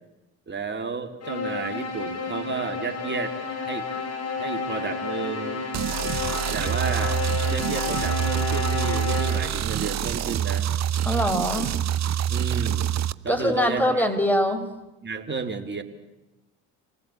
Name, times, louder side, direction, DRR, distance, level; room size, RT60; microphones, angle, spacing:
voice 1, 0.5-3.4 3.7-3.9 4.4-5.6 6.5-7.2 7.5-10.7 12.3-13.0 13.2-14.1 15.0-15.8, right 4 dB, 25° right, 6 dB, 3.5 m, -32 dB
sound 1, 1.2-9.8, left 4 dB, 40° left, 5.0 m, -31 dB
sound 2, 5.7-13.1, right 10 dB, 40° right, 0.9 m, -26 dB
voice 2, 11.0-11.7 13.3-14.7, equal, 5° left, 6 dB, 4.8 m, -23 dB
26.5 x 19.5 x 8.7 m, 1.0 s
hypercardioid pair, 65°, 40 cm